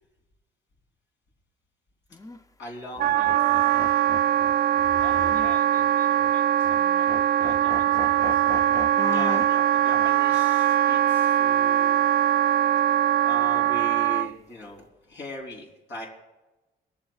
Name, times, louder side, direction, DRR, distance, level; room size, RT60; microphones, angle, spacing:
sound 1, 2.1-2.4 3.0-5.9 6.2-6.3 6.6-6.8 7.1-9.5 9.9-10.1 13.3-14.2, left 2 dB, 15° left, 0.6 m, -38 dB
voice 1, 2.6-3.7 8.9-12.0 13.2-16.1, left 1 dB, 70° left, -2 dB, 3.6 m, -39 dB
Wind instrument woodwind instrument, 3.0-14.3, right 11 dB, 50° right, 0.4 m, -22 dB
voice 2, 5.0-7.1 7.4-8.6, left 2 dB, 40° left, 1 dB, 3.8 m, -46 dB
20.5 x 14.5 x 2.4 m, 1.1 s
cardioid pair, 90°, 20 cm